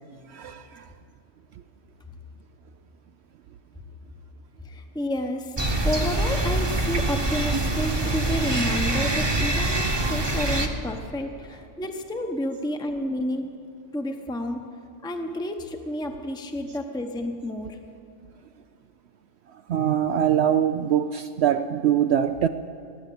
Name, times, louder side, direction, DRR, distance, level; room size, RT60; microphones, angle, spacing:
voice 1, 0.3-0.9 19.5-22.5, right 9 dB, 65° right, 9 dB, 0.8 m, -23 dB
voice 2, 4.6-5.6 5.8-13.5 13.9-14.7 15.0-17.8, equal, 5° left, 4 dB, 0.8 m, -30 dB
sound 1, 5.6-10.7, right 2 dB, 20° right, 1.1 m, -24 dB
17.0 x 9.4 x 8.7 m, 2.5 s
omnidirectional pair, 1.3 m